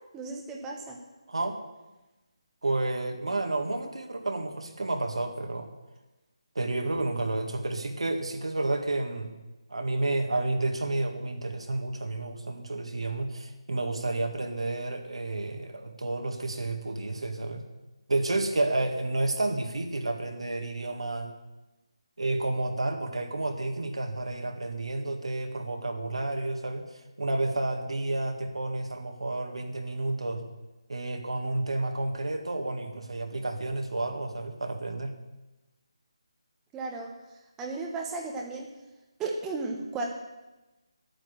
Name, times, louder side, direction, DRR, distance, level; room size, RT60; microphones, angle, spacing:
voice 1, 0.1-1.0 36.7-37.1 37.6-38.7 39.2-40.1, right 3 dB, 10° right, 0 dB, 1.2 m, -34 dB
voice 2, 1.3-1.6 2.6-5.7 6.6-9.3 9.7-17.6 18.1-21.3 22.2-30.4 30.9-35.2, right 2 dB, 75° right, 4 dB, 1.9 m, -30 dB
11.0 x 9.1 x 7.7 m, 1.1 s
figure-of-eight pair, 155°, 3 cm